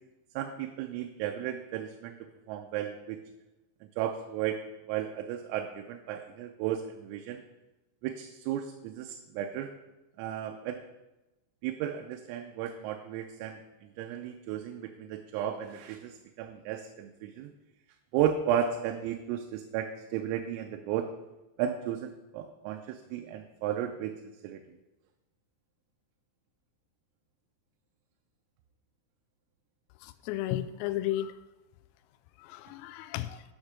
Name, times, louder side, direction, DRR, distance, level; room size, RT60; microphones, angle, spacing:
voice 1, 0.4-2.2 2.5-3.2 3.8-4.6 4.9-7.4 8.0-9.7 10.2-10.8 11.6-17.5 18.1-21.1 21.6-24.1 24.4-24.6, right 10 dB, 90° right, 4 dB, 3.4 m, -34 dB
voice 2, 30.0-31.3 32.4-33.4, left 13 dB, 90° left, 11 dB, 3.3 m, -33 dB
10.0 x 6.5 x 6.0 m, 1.0 s
omnidirectional pair, 5.9 m